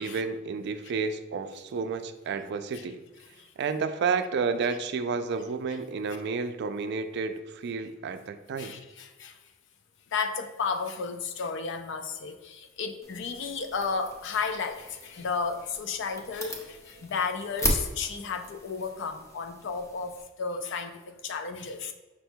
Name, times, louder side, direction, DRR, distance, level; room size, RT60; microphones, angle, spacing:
voice 1, 0.0-3.0 3.6-8.8, right 5 dB, 55° right, 9 dB, 0.3 m, -31 dB
voice 2, 8.6-9.4 10.1-21.9, left 5 dB, 65° left, 7 dB, 0.5 m, -33 dB
sound 1, 13.0-20.2, left 1 dB, 15° left, 0.7 m, -37 dB
5.5 x 2.2 x 4.4 m, 1.2 s
head